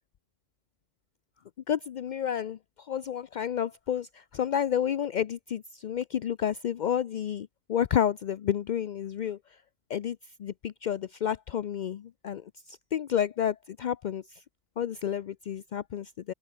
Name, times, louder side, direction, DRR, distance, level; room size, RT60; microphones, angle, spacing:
voice 1, 1.7-9.4 9.9-14.4 14.8-16.3, left 9 dB, 65° left, 0.4 m, -30 dB
open air
omnidirectional pair, 1.3 m